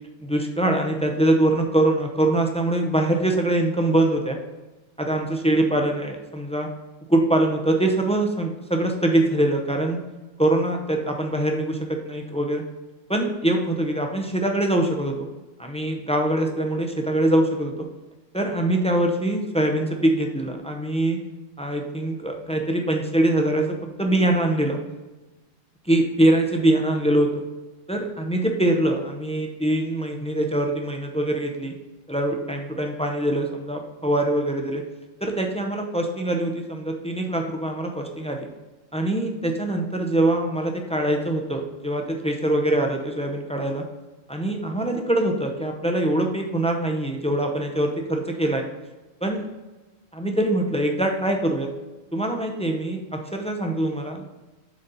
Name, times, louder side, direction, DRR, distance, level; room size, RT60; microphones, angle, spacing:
voice 1, 0.2-4.4 5.0-6.7 7.1-10.0 10.4-12.6 13.1-15.3 15.6-17.9 18.3-21.2 21.6-24.8 25.9-27.3 27.9-31.7 32.1-34.8 35.2-38.5 38.9-43.8 44.3-48.6 49.2-49.5 50.1-51.7 52.1-54.3, right 1 dB, 10° left, 3 dB, 0.4 m, -23 dB
7.6 x 4.1 x 3.9 m, 1.1 s
omnidirectional pair, 1.3 m